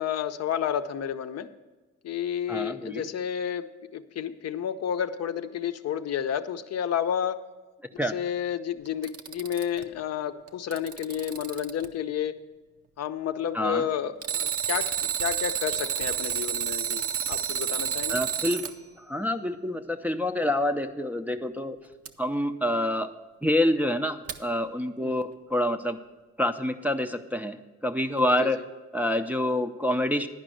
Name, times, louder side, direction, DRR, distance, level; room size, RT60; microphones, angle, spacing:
voice 1, 0.0-1.5 2.0-7.4 8.0-12.4 13.0-18.2 25.0-25.2 28.4-28.5, left 9 dB, 55° left, 9 dB, 0.6 m, -31 dB
voice 2, 2.5-3.1 8.0-8.1 13.5-13.9 18.1-18.6 19.0-21.8 22.2-23.1 23.4-26.0 26.4-27.6 27.8-28.6 28.9-30.3, left 1 dB, 5° right, 5 dB, 0.5 m, -27 dB
Alarm, 8.9-9.8 10.5-11.9 14.2-18.7 22.0-22.1 24.3-24.4, right 8 dB, 50° right, 0.6 m, -30 dB
10.5 x 5.0 x 7.7 m, 1.2 s
cardioid pair, 90°, 30 cm